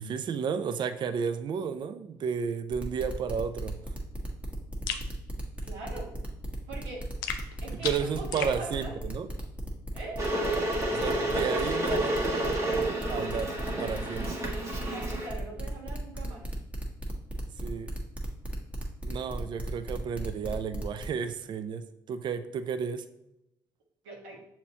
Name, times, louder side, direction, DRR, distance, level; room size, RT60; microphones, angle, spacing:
voice 1, 0.0-3.8 7.7-9.3 10.9-14.4 17.4-17.9 19.0-23.1, right 6 dB, 45° right, 11 dB, 0.4 m, -33 dB
sound 1, 2.7-21.0, equal, 15° right, 1.3 m, -38 dB
sound 2, 4.9-5.1 7.2-8.6, left 8 dB, 90° left, 0.4 m, -35 dB
voice 2, 5.6-6.1 6.7-7.1 7.6-8.9 9.9-10.3 14.9-16.5 24.0-24.4, right 2 dB, 80° right, -3 dB, 1.2 m, -42 dB
Water / Boiling, 10.2-15.3, right 1 dB, 30° right, 1.4 m, -30 dB
6.7 x 2.8 x 2.8 m, 0.85 s
hypercardioid pair, 55°, 10 cm